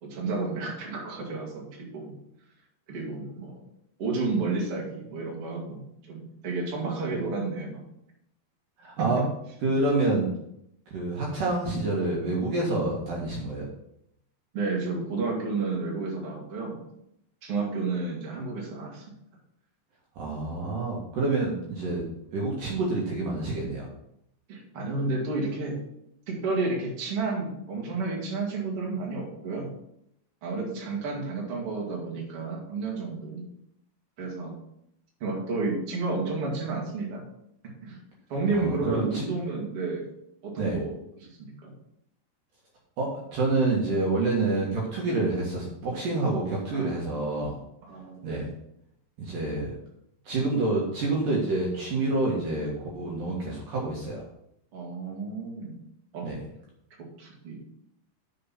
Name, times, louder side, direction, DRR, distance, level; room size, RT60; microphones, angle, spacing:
voice 1, 0.0-2.1 2.9-3.6 4.0-5.8 6.1-7.8 9.0-9.2 14.5-16.8 17.4-19.0 24.5-25.8 26.3-29.7 30.4-33.4 34.2-34.5 35.2-37.2 37.8-38.0 38.3-40.0 40.4-41.7 46.7-47.1 47.8-48.5 54.7-55.7 56.1-56.3 57.0-57.6, right 3 dB, 40° right, -2 dB, 2.8 m, -31 dB
voice 2, 8.8-9.2 9.6-10.3 10.9-13.7 20.2-22.0 22.3-23.9 38.5-39.2 40.6-40.8 43.0-47.6 48.2-48.4 49.2-49.7 50.3-54.2 56.2-56.4, right 2 dB, 60° right, -3 dB, 3.1 m, -27 dB
8.1 x 5.6 x 5.8 m, 0.76 s
omnidirectional pair, 4.6 m